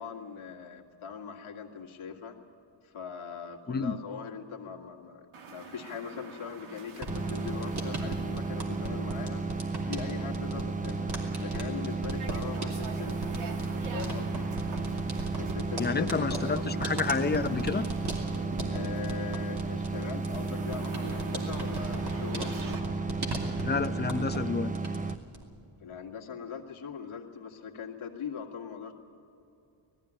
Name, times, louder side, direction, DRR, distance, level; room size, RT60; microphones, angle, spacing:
voice 1, 0.0-2.4 2.8-9.4 9.9-11.1 11.4-13.2 13.9-14.5 15.3-16.7 18.7-22.8 25.8-28.9, left 7 dB, 70° left, 1 dB, 1.9 m, -41 dB
sound 1, 5.3-22.8, right 4 dB, 70° right, 1.6 m, -46 dB
sound 2, 7.0-24.5 24.7-25.4, right 2 dB, 50° right, 2.8 m, -39 dB
sound 3, 7.1-25.2, right 3 dB, 15° right, 0.4 m, -33 dB
voice 2, 15.8-17.9 23.6-24.7, left 4 dB, 20° left, 10 dB, 0.7 m, -29 dB
18.5 x 14.5 x 10.0 m, 2.6 s
cardioid pair, 110°, 50 cm